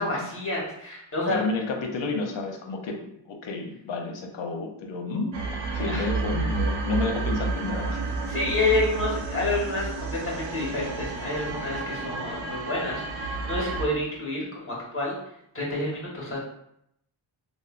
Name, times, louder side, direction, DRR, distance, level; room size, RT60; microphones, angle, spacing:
voice 1, 0.0-1.4 5.8-6.1 8.3-15.2 15.5-16.4, left 2 dB, 25° left, -4 dB, 1.2 m, -29 dB
voice 2, 1.3-3.0 3.3-5.3 5.7-8.1, left 3 dB, 65° left, 3 dB, 0.7 m, -30 dB
sound 1, 5.3-13.9, right 3 dB, 65° right, 0.6 m, -31 dB
3.4 x 2.0 x 2.4 m, 0.76 s
cardioid pair, 95°, 49 cm